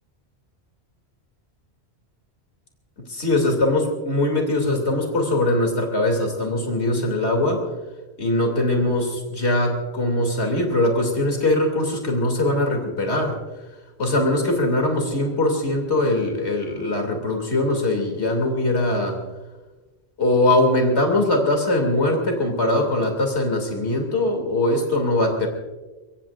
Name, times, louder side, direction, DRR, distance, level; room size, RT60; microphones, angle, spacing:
voice 1, 3.1-7.7 8.2-13.4 14.0-19.2 20.2-25.5, left 1 dB, 90° left, 2 dB, 3.2 m, -21 dB
24.0 x 23.5 x 2.6 m, 1.2 s
omnidirectional pair, 1.1 m